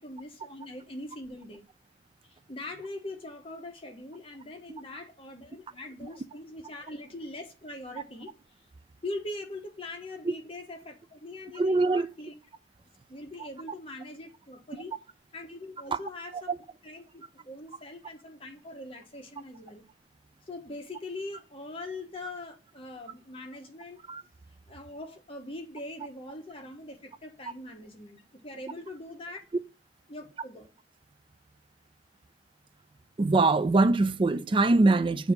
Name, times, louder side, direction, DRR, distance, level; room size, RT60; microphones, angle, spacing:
voice 1, 0.0-1.6 2.3-8.3 8.6-8.7 9.0-12.3 13.1-14.9 15.3-16.5 16.8-19.8 20.5-24.0 24.7-29.4 30.1-30.7, left 2 dB, 30° left, 1.0 m, -42 dB
voice 2, 11.6-12.1 15.9-16.0 16.5-16.6 24.1-24.2 33.2-35.3, right 3 dB, 25° right, 0.3 m, -23 dB
6.9 x 2.7 x 5.8 m
head